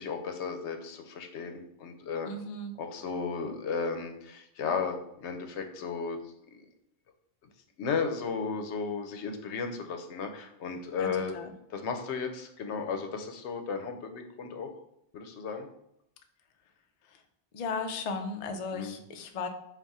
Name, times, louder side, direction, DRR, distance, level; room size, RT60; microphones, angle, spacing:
voice 1, 0.0-2.3 2.8-6.2 6.5-6.7 7.8-11.3 11.7-14.7 15.1-15.7 18.7-19.0, left 5 dB, 85° left, 6 dB, 0.9 m, -34 dB
voice 2, 2.3-2.7 11.0-11.5 17.1-17.2 17.5-19.5, left 4 dB, 60° left, 6 dB, 0.4 m, -36 dB
4.0 x 2.4 x 3.6 m, 0.77 s
omnidirectional pair, 1.1 m